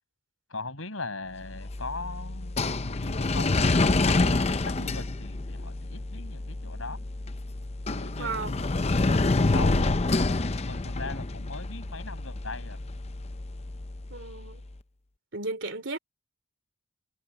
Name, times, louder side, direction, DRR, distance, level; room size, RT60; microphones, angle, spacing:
voice 1, 0.5-3.8 4.2-7.0 7.9-8.7 9.0-12.8, left 3 dB, 85° left, 7.5 m, -40 dB
sound 1, 1.4-14.5, left 2 dB, 30° left, 0.6 m, -28 dB
voice 2, 8.2-8.6 14.1-14.6 15.3-16.0, right 3 dB, 65° right, 3.1 m, -35 dB
head